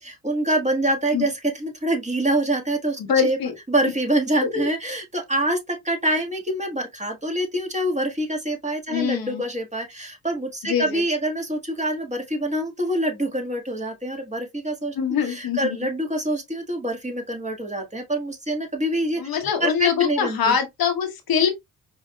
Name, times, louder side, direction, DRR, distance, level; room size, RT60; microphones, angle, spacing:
voice 1, 0.0-3.4 3.7-14.9 15.2-20.5, right 1 dB, 20° right, 1.5 m, -25 dB
voice 2, 3.0-3.5 4.4-4.7 8.9-9.4 10.6-11.0 14.9-15.8 19.2-21.5, left 7 dB, 75° left, 1.1 m, -23 dB
4.8 x 2.7 x 2.2 m
cardioid pair, 60°, 36 cm